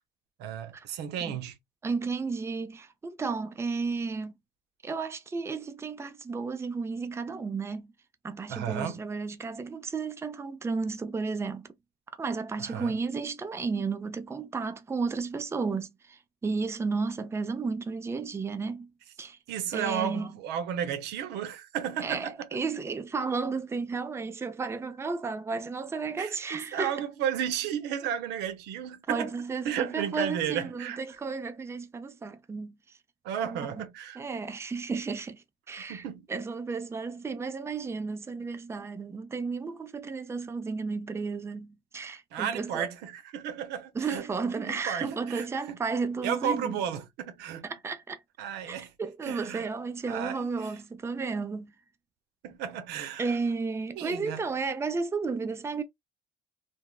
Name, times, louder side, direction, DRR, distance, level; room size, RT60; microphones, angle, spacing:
voice 1, 0.4-1.6 8.5-9.0 12.6-13.0 19.5-22.6 26.2-29.3 29.6-31.0 33.2-34.2 35.9-36.3 42.3-44.2 44.6-45.8 46.2-47.7 48.4-48.9 49.2-49.7 50.1-50.5 52.4-53.4 54.0-54.4, right 9 dB, 85° right, 0.8 m, -33 dB
voice 2, 1.8-4.3 4.8-7.9 8.2-11.7 12.2-18.9 19.2-19.4 19.7-20.3 22.0-26.9 29.1-33.0 33.4-33.7 34.2-42.9 43.9-46.8 47.6-48.2 48.6-51.7 53.2-55.8, right 4 dB, 15° right, 0.4 m, -33 dB
3.4 x 2.0 x 2.3 m
cardioid pair, 110°, 17 cm